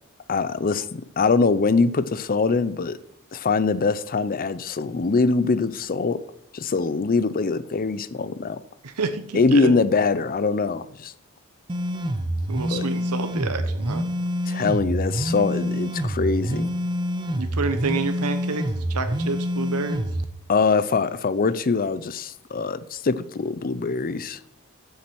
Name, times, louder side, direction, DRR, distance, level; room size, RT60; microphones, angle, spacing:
voice 1, 0.3-3.0 3.3-6.2 6.5-8.6 9.3-11.1 12.7-12.8 14.5-16.7 20.5-24.4, left 4 dB, 40° left, 0.5 m, -23 dB
voice 2, 8.8-9.7 12.5-14.0 17.4-20.1, right 4 dB, 90° right, 0.9 m, -29 dB
sound 1, 11.7-20.2, equal, 20° right, 0.6 m, -27 dB
7.4 x 7.3 x 6.1 m
head